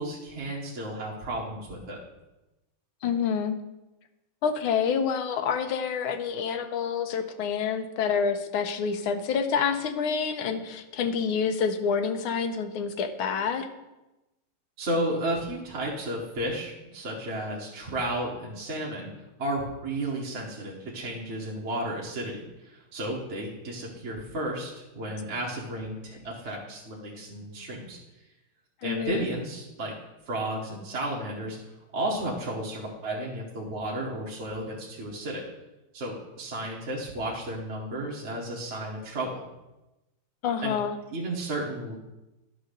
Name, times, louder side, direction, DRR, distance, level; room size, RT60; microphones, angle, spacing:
voice 1, 0.0-2.0 14.8-19.1 19.4-28.0 28.8-29.9 30.3-31.6 31.9-35.4 35.9-39.4 40.6-40.7 41.1-41.9, right 1 dB, 40° right, -3 dB, 1.3 m, -33 dB
voice 2, 3.0-3.6 4.4-13.7 28.8-29.3 40.4-41.0, left 6 dB, 90° left, 8 dB, 1.6 m, -27 dB
11.0 x 3.9 x 6.5 m, 1.0 s
omnidirectional pair, 2.2 m